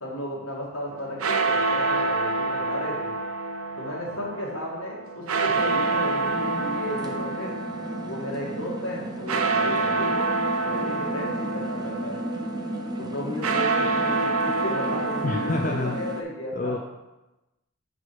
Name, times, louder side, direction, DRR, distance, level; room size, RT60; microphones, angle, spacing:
voice 1, 0.0-3.1 3.8-7.5 8.0-10.3 10.6-12.2 13.0-16.8, left 1 dB, 65° left, -3 dB, 1.8 m, -34 dB
sound 1, 0.9-16.2, right 3 dB, 80° right, 0.6 m, -28 dB
sound 2, 5.5-16.2, right 1 dB, 20° right, 0.5 m, -34 dB
voice 2, 15.2-16.0 16.5-16.8, left 3 dB, 35° left, 1 dB, 0.4 m, -27 dB
6.2 x 4.9 x 4.1 m, 1.0 s
head